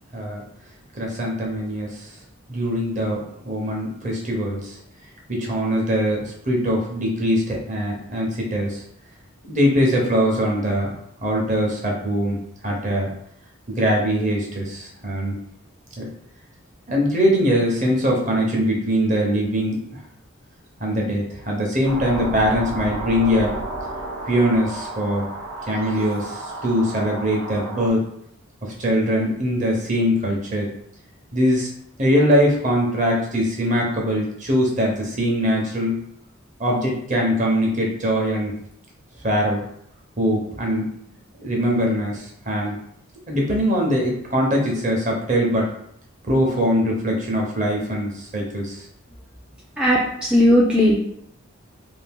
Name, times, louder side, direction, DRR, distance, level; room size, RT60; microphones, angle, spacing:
voice 1, 0.9-2.1 2.5-3.2 3.4-4.7 5.3-8.8 9.5-10.9 11.2-13.1 13.7-15.3 16.0-16.1 16.9-20.0 20.8-23.5 24.2-25.2 25.7-28.1 28.6-30.7 31.3-31.7 32.0-36.0 36.6-38.5 39.2-39.6 40.2-40.9 41.4-42.8 43.3-45.7 46.3-48.8, equal, 35° right, -1 dB, 0.7 m, -22 dB
sound 1, 21.8-27.9, right 2 dB, 75° right, 0.7 m, -32 dB
voice 2, 49.8-51.0, left 1 dB, 5° right, -5 dB, 0.3 m, -17 dB
2.7 x 2.5 x 3.5 m, 0.70 s
head